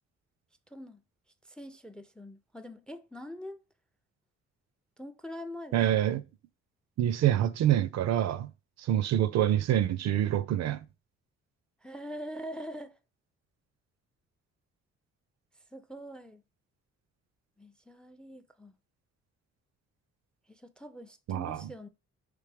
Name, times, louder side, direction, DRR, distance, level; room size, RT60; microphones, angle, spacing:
voice 1, 0.7-1.0 1.5-3.6 5.0-5.8 11.8-12.9 15.7-16.4 17.6-18.7 20.5-21.9, equal, 5° left, 0.4 m, -43 dB
voice 2, 5.7-6.2 7.0-8.5 8.8-10.8 21.3-21.7, right 11 dB, 60° right, 0.4 m, -26 dB
3.3 x 3.2 x 3.4 m
supercardioid pair, 65°, 30 cm